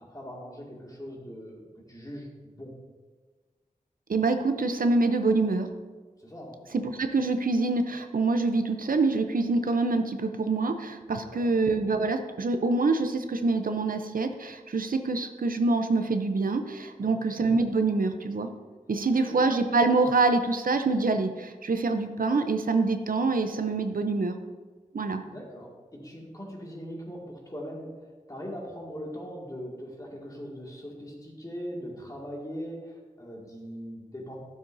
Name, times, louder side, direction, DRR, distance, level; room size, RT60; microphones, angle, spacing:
voice 1, 0.0-2.8 6.2-6.6 11.2-11.5 17.0-17.2 19.3-19.4 25.2-34.4, equal, 25° left, -3 dB, 2.2 m, -41 dB
voice 2, 4.1-5.7 6.7-18.5 18.9-24.3 24.9-25.2, right 3 dB, 75° right, 7 dB, 0.6 m, -25 dB
12.5 x 7.4 x 2.7 m, 1.3 s
wide cardioid pair, 65°, 15 cm